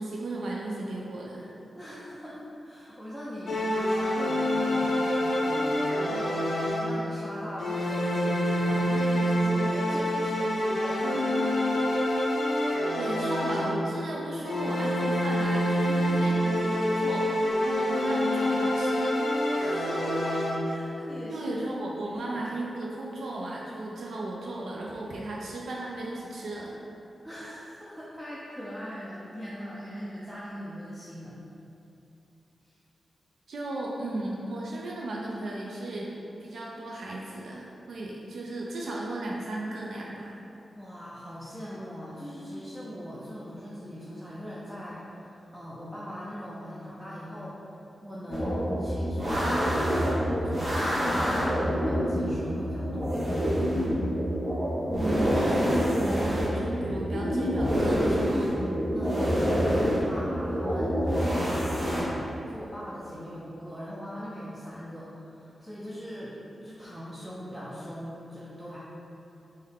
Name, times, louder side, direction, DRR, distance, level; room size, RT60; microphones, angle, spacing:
voice 1, 0.0-1.5 12.9-19.2 21.3-26.8 33.5-36.1 36.4-40.4 54.9-58.6, right 1 dB, 80° right, -3 dB, 0.3 m, -35 dB
voice 2, 1.7-11.9 16.0-16.1 19.6-21.6 22.0-22.4 27.2-31.4 40.8-47.6 48.0-53.4 58.9-66.4 66.6-68.8, equal, 5° right, -8 dB, 0.4 m, -40 dB
sound 1, 3.5-7.2 7.6-14.0 14.4-20.9, equal, 60° left, 0.4 m, -27 dB
sound 2, 48.3-62.0, equal, 30° right, 0.7 m, -27 dB
3.4 x 2.1 x 3.6 m, 2.9 s
wide cardioid pair, 145°, 0 cm